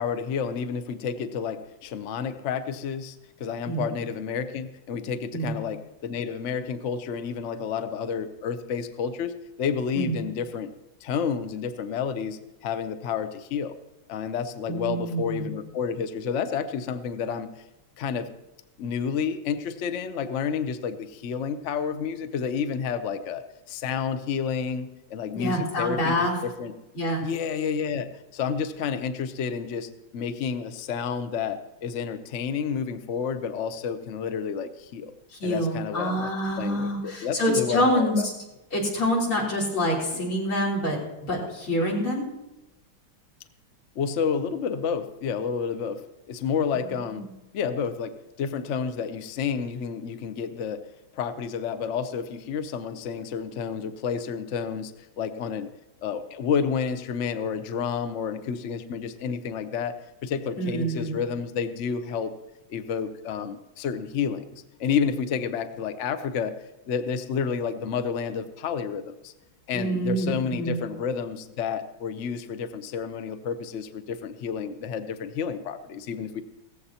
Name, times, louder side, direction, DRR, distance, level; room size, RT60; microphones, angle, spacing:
voice 1, 0.0-10.7 11.0-13.8 14.1-17.5 18.0-18.3 18.8-26.7 27.2-35.1 35.4-36.3 36.6-38.3 44.0-46.0 46.3-47.3 47.5-50.8 51.1-54.9 55.2-55.7 56.0-62.3 62.7-64.5 64.8-66.5 66.9-69.3 69.7-76.4, left 6 dB, 65° left, 10 dB, 0.7 m, -30 dB
voice 2, 14.7-15.5 25.3-26.3 27.0-27.2 35.4-38.3 38.7-42.3 47.1-47.2 60.6-61.2 69.7-70.7, equal, 85° left, -4 dB, 4.3 m, -26 dB
17.0 x 15.0 x 2.9 m, 0.98 s
omnidirectional pair, 2.3 m